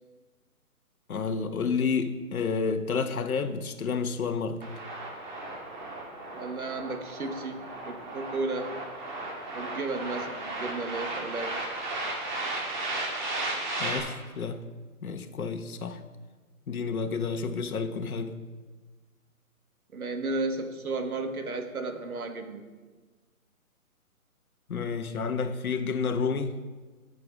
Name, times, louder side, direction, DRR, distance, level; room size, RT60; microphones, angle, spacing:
voice 1, 1.1-4.6 13.8-14.6 15.0-16.0 16.7-18.3 24.7-26.6, left 5 dB, 70° left, 1.1 m, -30 dB
sound 1, 4.6-14.0, right 2 dB, 30° right, 1.9 m, -35 dB
voice 2, 6.3-8.7 9.5-11.6 19.9-22.6, right 3 dB, 70° right, 1.7 m, -33 dB
14.0 x 6.8 x 4.9 m
hypercardioid pair, 170°, 44 cm